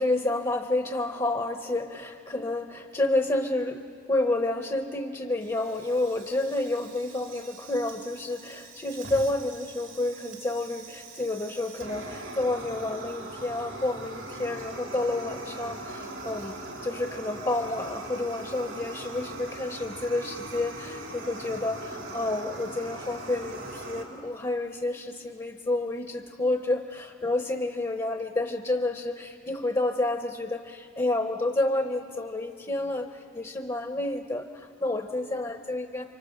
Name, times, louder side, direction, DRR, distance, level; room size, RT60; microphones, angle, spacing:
voice 1, 0.0-3.8 4.1-16.5 16.8-36.0, left 2 dB, 20° left, 5 dB, 0.9 m, -29 dB
Fire, 5.4-24.0, right 2 dB, 90° right, 3.2 m, -41 dB
29.5 x 25.0 x 6.6 m, 2.4 s
head